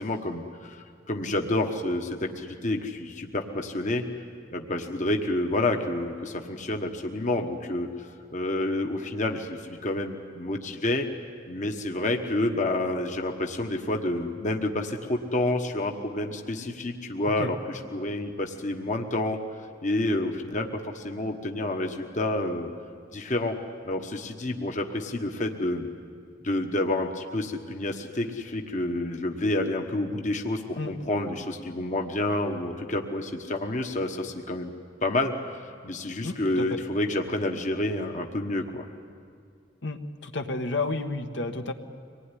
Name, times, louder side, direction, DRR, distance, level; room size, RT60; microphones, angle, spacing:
voice 1, 0.0-4.0 4.5-11.1 11.5-19.4 19.8-22.7 23.1-23.6 23.8-25.9 26.4-34.7 35.0-38.8, left 1 dB, 45° left, 4 dB, 1.3 m, -29 dB
voice 2, 36.2-36.6 39.8-41.7, left 2 dB, 70° left, 5 dB, 1.4 m, -31 dB
24.5 x 19.5 x 9.9 m, 2.2 s
head